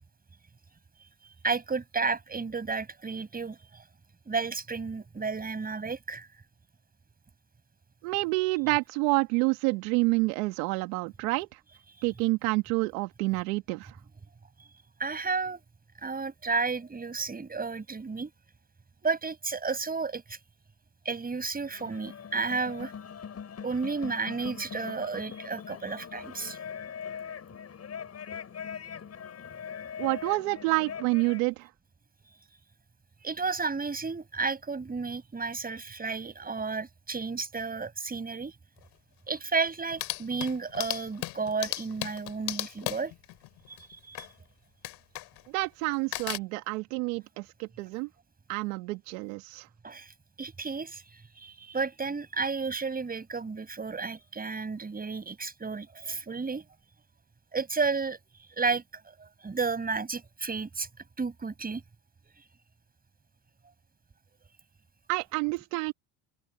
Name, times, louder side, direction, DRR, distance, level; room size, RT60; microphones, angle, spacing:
voice 1, 1.4-3.8 4.3-6.3 15.0-15.6 16.0-18.3 19.0-20.4 21.1-22.9 23.6-26.6 33.2-38.5 39.3-43.1 43.7-43.8 44.1-44.3 49.8-50.1 50.4-56.6 57.5-58.2 58.6-60.9 61.2-61.8, right 4 dB, 20° right, 6.9 m, -32 dB
voice 2, 8.0-11.6 12.0-14.0 30.0-31.7 45.5-48.1 48.5-49.7 65.1-65.9, right 25 dB, 80° right, 2.2 m, -28 dB
sound 1, 21.6-31.5, left 7 dB, 35° left, 7.4 m, -41 dB
sound 2, 38.8-38.9 39.3-39.4 39.7-44.3 44.8-45.6 45.9-46.4, left 18 dB, 65° left, 4.3 m, -37 dB
supercardioid pair, 95°, 43 cm